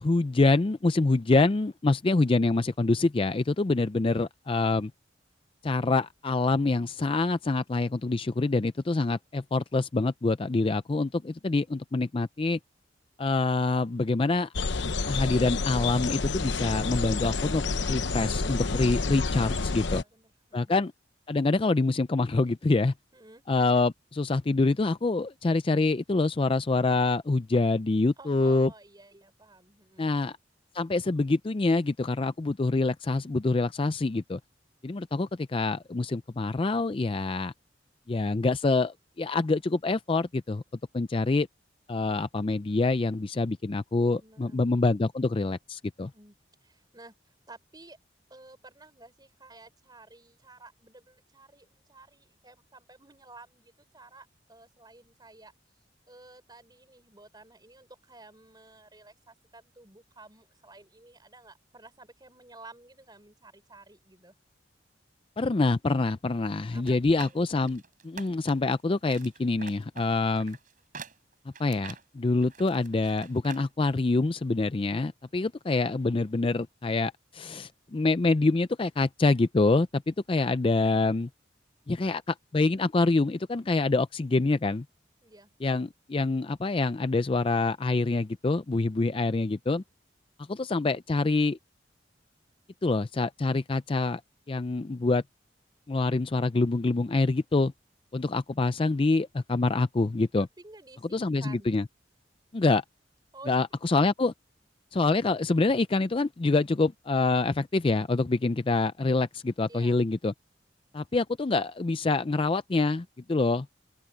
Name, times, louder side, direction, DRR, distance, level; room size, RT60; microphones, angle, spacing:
voice 1, 0.0-4.9 5.6-12.6 13.2-14.5 15.1-17.6 17.9-20.0 20.5-20.9 21.3-22.9 23.5-28.7 30.0-30.3 30.7-34.4 34.8-37.5 38.1-40.6 40.9-41.5 41.9-46.1 65.4-70.6 71.6-81.3 81.9-84.8 85.6-89.8 90.5-91.6 92.8-94.2 94.5-95.2 95.9-97.7 98.1-100.5 101.1-101.8 102.5-102.8 103.5-104.3 104.9-110.3 110.9-113.7, left 3 dB, 30° left, 0.4 m, -26 dB
sound 1, 14.5-20.0, left 3 dB, 75° left, 0.9 m, -29 dB
voice 2, 19.8-20.7 23.1-23.4 28.2-30.1 44.2-44.7 46.1-46.4 46.6-47.1 47.5-48.0 48.3-55.5 56.1-64.3 66.7-67.4 85.2-85.5 100.4-101.7 103.3-103.6 109.7-110.0, right 2 dB, 20° right, 5.3 m, -52 dB
sound 2, 66.8-68.7 69.0-73.7 74.0-74.1, right 5 dB, 45° right, 6.3 m, -46 dB
open air
head